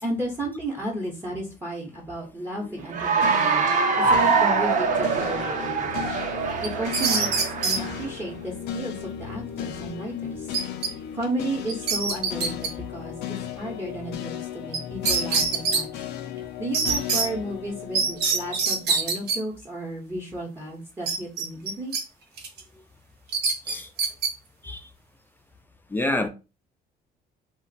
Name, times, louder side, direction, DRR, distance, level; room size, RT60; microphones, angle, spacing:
voice 1, 0.0-3.7 4.0-6.1 6.6-10.5 11.1-16.1 16.6-21.9, right 1 dB, 15° right, 0.8 m, -33 dB
Cheering / Applause, 2.9-8.1, right 5 dB, 50° right, 0.6 m, -24 dB
sound 1, 3.2-19.5, left 9 dB, 80° left, 0.5 m, -36 dB
sound 2, 6.6-7.8 10.5-10.9 11.2-11.3 11.7-12.7 14.7-14.8 15.1-15.8 16.7-17.3 17.9-19.4 21.1-22.0 22.4-22.6 23.3-24.3, right 4 dB, 75° right, 0.9 m, -24 dB
voice 2, 25.9-26.3, left 2 dB, 10° left, 0.4 m, -28 dB
2.5 x 2.1 x 3.9 m
cardioid pair, 110°, 17 cm